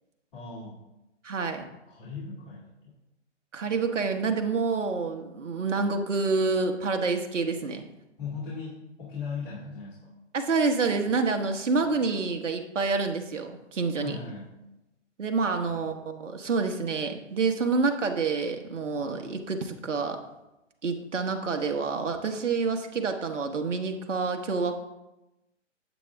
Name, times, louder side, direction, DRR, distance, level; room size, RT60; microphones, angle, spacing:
voice 1, 0.3-0.8 1.9-2.7 8.2-10.1 11.7-12.1 14.0-14.6 15.5-16.0, left 5 dB, 40° left, -6 dB, 2.7 m, -39 dB
voice 2, 1.2-1.7 3.5-7.8 10.3-14.2 15.2-20.2 20.8-24.8, right 4 dB, 80° right, 5 dB, 1.3 m, -28 dB
8.4 x 8.2 x 3.5 m, 0.95 s
hypercardioid pair, 145°, 37 cm